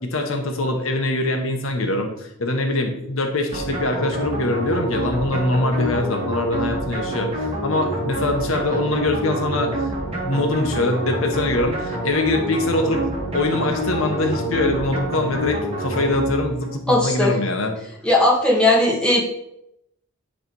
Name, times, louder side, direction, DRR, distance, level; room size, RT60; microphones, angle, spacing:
voice 1, 0.0-13.0 13.3-17.8, left 2 dB, 80° left, 4 dB, 1.1 m, -23 dB
sound 1, 3.5-16.8, right 1 dB, 30° right, 1.6 m, -27 dB
voice 2, 16.9-17.3 18.0-19.2, left 1 dB, 5° left, -4 dB, 1.5 m, -17 dB
9.7 x 3.4 x 4.5 m, 0.80 s
head